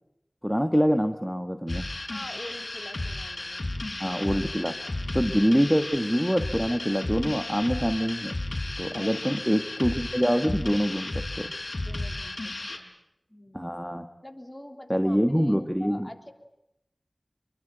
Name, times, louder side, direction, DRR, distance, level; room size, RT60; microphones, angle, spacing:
voice 1, 0.4-1.9 4.0-4.8 5.1-8.3 8.8-11.5 13.5-14.1 14.9-16.1, equal, 5° right, 8 dB, 1.4 m, -25 dB
sound 1, 1.7-12.8, left 2 dB, 50° left, 5.1 m, -34 dB
voice 2, 2.1-3.7 9.0-9.4 11.9-12.9 13.3-13.7 14.2-15.5 15.8-16.3, left 1 dB, 15° left, 5 dB, 3.4 m, -45 dB
26.0 x 23.5 x 9.1 m, 0.87 s
wide cardioid pair, 65°, 0 cm